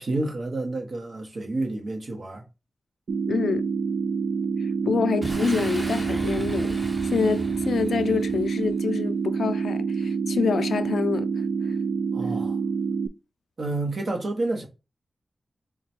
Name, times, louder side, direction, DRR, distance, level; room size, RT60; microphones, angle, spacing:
voice 1, 0.0-2.4 4.8-5.0 12.1-12.6 13.6-14.7, right 2 dB, 60° right, 1.0 m, -29 dB
sound 1, 3.1-13.1, right 5 dB, 75° right, 0.3 m, -27 dB
voice 2, 3.3-3.6 4.6-11.3, left 5 dB, 85° left, 0.4 m, -27 dB
Boom, 5.2-8.8, right 1 dB, 25° right, 0.9 m, -37 dB
3.8 x 2.2 x 4.4 m
wide cardioid pair, 95°, 0 cm